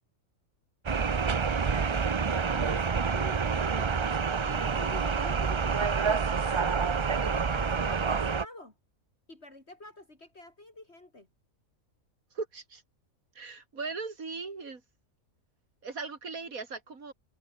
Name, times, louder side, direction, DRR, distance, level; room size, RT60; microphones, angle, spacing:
sound 1, 0.9-8.5, right 5 dB, 40° right, 0.4 m, -28 dB
voice 1, 1.3-4.1 4.4-6.8 7.2-8.7 9.3-11.3, left 2 dB, 50° left, 5.2 m, -47 dB
voice 2, 12.3-12.8 13.3-14.8 15.8-17.1, right 4 dB, 85° right, 3.2 m, -38 dB
omnidirectional pair, 1.4 m